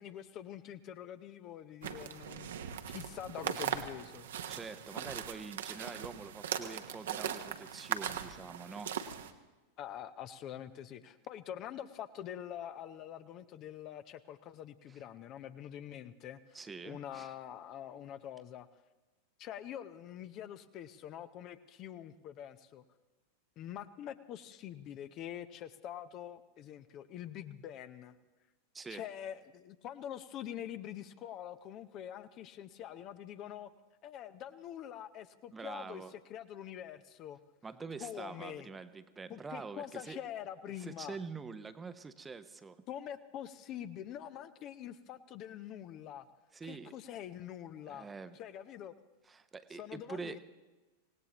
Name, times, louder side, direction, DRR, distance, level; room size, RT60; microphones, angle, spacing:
voice 1, 0.0-2.5 2.9-4.3 9.8-16.6 16.8-18.7 19.4-22.8 23.6-28.1 28.9-33.7 34.0-37.4 38.0-38.7 39.3-41.2 42.9-46.3 46.6-48.1 48.3-48.9 49.8-50.4, left 10 dB, 35° left, 12 dB, 0.6 m, -45 dB
sound 1, 1.8-9.3, right 9 dB, 60° right, 0.9 m, -40 dB
voice 2, 4.5-9.0 14.9-15.0 16.5-17.3 28.7-29.0 35.5-36.1 37.6-40.2 40.8-42.8 46.5-46.9 47.9-48.4 49.3-50.4, right 4 dB, 15° right, 12 dB, 0.8 m, -45 dB
25.5 x 18.0 x 3.0 m, 1.2 s
figure-of-eight pair, 90°, 0 cm